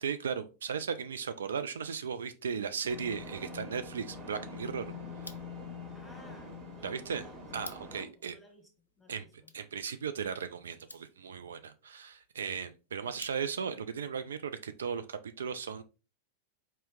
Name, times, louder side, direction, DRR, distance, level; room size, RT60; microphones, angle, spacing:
voice 1, 0.0-4.9 6.8-7.2 7.5-8.3 9.1-9.2 9.5-15.8, right 6 dB, 65° right, 0.3 m, -36 dB
sound 1, 2.9-8.1, left 3 dB, 30° right, 1.7 m, -44 dB
sound 2, 5.1-13.8, left 2 dB, 80° left, 0.4 m, -55 dB
voice 2, 5.9-7.4 8.0-8.7 9.0-9.5 13.1-13.2, left 2 dB, 5° left, 1.1 m, -58 dB
4.4 x 2.9 x 3.3 m
figure-of-eight pair, 90°, 0 cm